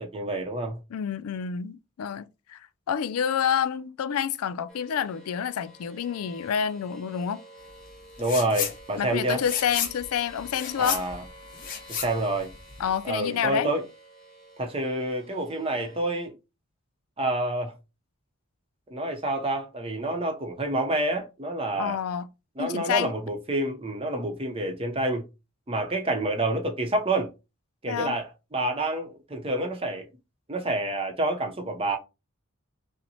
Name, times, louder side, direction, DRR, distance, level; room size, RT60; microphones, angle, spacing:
voice 1, 0.0-0.8 8.2-9.4 10.8-11.2 11.9-12.5 13.0-13.8 14.6-16.3 17.2-17.7 18.9-22.0 22.6-25.3 25.7-27.3 27.8-30.1 30.5-32.0, right 1 dB, 25° right, 0.7 m, -28 dB
voice 2, 0.9-2.6 2.9-7.4 9.0-11.0 12.8-13.7 21.8-22.3 22.6-23.1 27.9-28.2, left 8 dB, 85° left, 0.4 m, -28 dB
sound 1, 4.7-16.3, equal, ahead, 1.2 m, -50 dB
sound 2, 8.2-8.8 9.1-13.0, left 7 dB, 40° left, 0.8 m, -33 dB
5.5 x 2.1 x 2.7 m
head